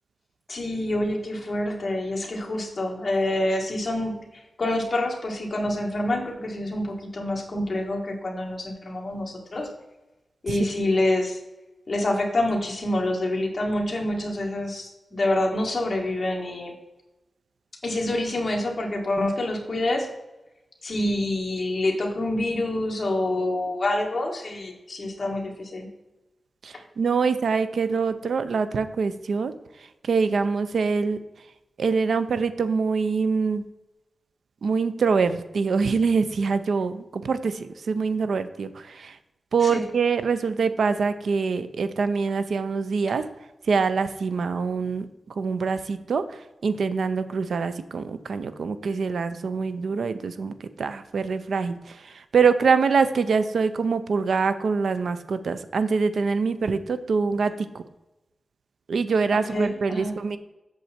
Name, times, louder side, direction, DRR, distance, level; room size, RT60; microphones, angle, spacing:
voice 1, 0.5-9.7 10.4-11.4 11.9-16.7 17.8-20.1 20.8-25.9 39.6-39.8 59.3-60.2, left 1 dB, 35° left, 0 dB, 1.7 m, -27 dB
voice 2, 26.6-31.2 31.8-33.6 34.6-39.2 39.5-43.3 43.6-57.8 58.9-60.4, right 5 dB, 80° right, 12 dB, 0.5 m, -25 dB
8.1 x 6.7 x 4.4 m, 1.0 s
wide cardioid pair, 165°, 0 cm